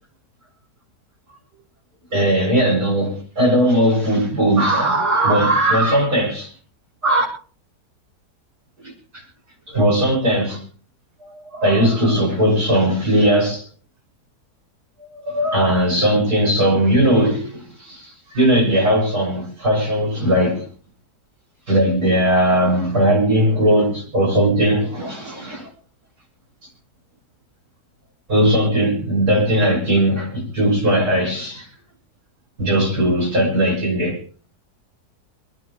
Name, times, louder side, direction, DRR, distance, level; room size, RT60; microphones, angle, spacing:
voice 1, 2.1-6.5 7.0-7.2 8.8-9.2 9.7-10.6 11.2-13.7 15.1-20.7 21.7-25.7 28.3-31.7 32.6-34.2, right 1 dB, 65° right, 6.9 m, -18 dB
27.0 x 9.7 x 3.2 m
omnidirectional pair, 1.8 m